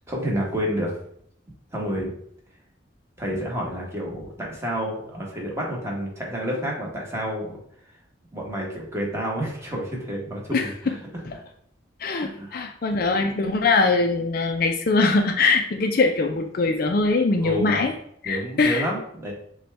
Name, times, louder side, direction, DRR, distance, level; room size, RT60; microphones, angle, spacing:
voice 1, 0.1-0.9 1.7-2.1 3.2-7.5 8.3-11.0 12.2-12.5 17.4-17.8 18.2-19.3, equal, 15° right, -3 dB, 1.1 m, -29 dB
voice 2, 12.0-17.9 18.2-18.8, left 3 dB, 50° left, 5 dB, 0.4 m, -22 dB
6.8 x 2.3 x 3.3 m, 0.67 s
head